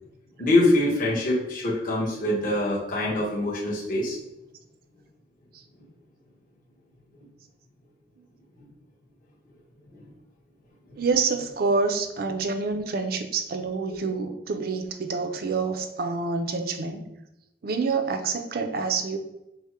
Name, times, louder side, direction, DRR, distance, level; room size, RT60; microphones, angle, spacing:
voice 1, 0.4-4.2 8.6-8.7 9.9-10.1, left 1 dB, 50° left, -5 dB, 1.1 m, -24 dB
voice 2, 11.0-17.1 17.6-19.2, right 4 dB, 55° right, 7 dB, 0.5 m, -27 dB
4.3 x 2.1 x 4.6 m, 0.90 s
head